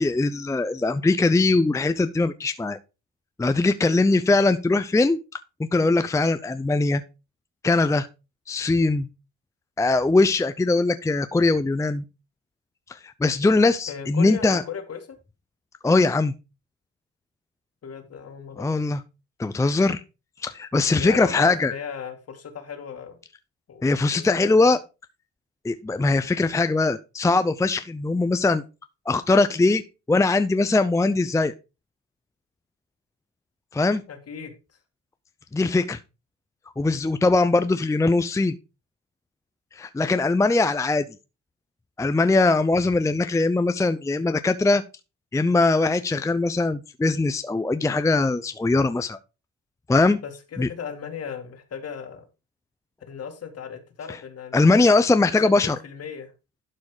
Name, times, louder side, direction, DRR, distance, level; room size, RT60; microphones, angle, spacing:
voice 1, 0.0-2.8 3.4-5.2 5.7-7.0 7.6-8.1 8.5-9.1 9.8-12.0 12.9-14.6 15.8-16.3 18.6-19.0 19.4-20.0 20.4-21.7 23.8-24.8 25.6-28.6 29.1-29.8 30.1-31.5 33.7-34.0 35.5-36.0 36.8-38.5 39.7-41.0 42.0-44.8 45.3-49.2 49.9-50.2 50.6-50.7 54.1-54.2 54.5-55.8, left 3 dB, 10° left, 0.5 m, -21 dB
voice 2, 13.9-15.2 17.8-18.7 21.0-23.2 23.7-23.8 24.1-24.8 34.1-34.6 50.2-52.2 53.1-54.8 55.4-56.3, left 7 dB, 55° left, 2.2 m, -36 dB
11.5 x 4.2 x 4.8 m
cardioid pair, 90°, 30 cm